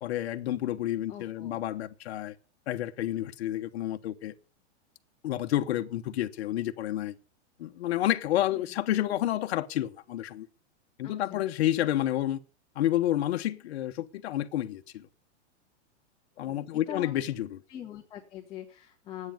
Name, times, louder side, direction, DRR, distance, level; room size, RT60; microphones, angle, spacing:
voice 1, 0.0-2.3 2.7-4.3 5.2-7.2 7.6-10.5 11.0-12.4 12.7-15.1 16.4-17.6, left 13 dB, 65° left, 1.1 m, -30 dB
voice 2, 1.1-1.6 8.5-8.7 11.0-11.4 16.4-17.2 17.7-19.3, left 9 dB, 15° left, 1.8 m, -43 dB
9.9 x 8.4 x 9.2 m
supercardioid pair, 165°, 35 cm